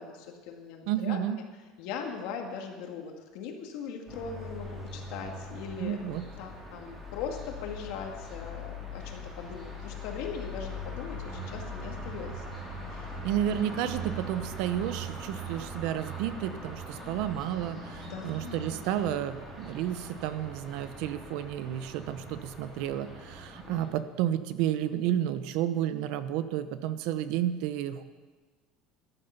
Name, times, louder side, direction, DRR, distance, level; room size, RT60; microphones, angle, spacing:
voice 1, 0.0-1.2 1.8-6.0 6.4-12.4 12.9-13.1 18.0-18.8 23.7-23.8, left 6 dB, 65° left, 2 dB, 2.2 m, -40 dB
voice 2, 0.9-1.4 5.8-6.2 13.2-28.0, right 11 dB, 65° right, 12 dB, 0.8 m, -31 dB
sound 1, 4.1-23.9, equal, 15° right, 3.8 m, -41 dB
14.0 x 11.0 x 5.8 m, 1.4 s
cardioid pair, 165°, 0 cm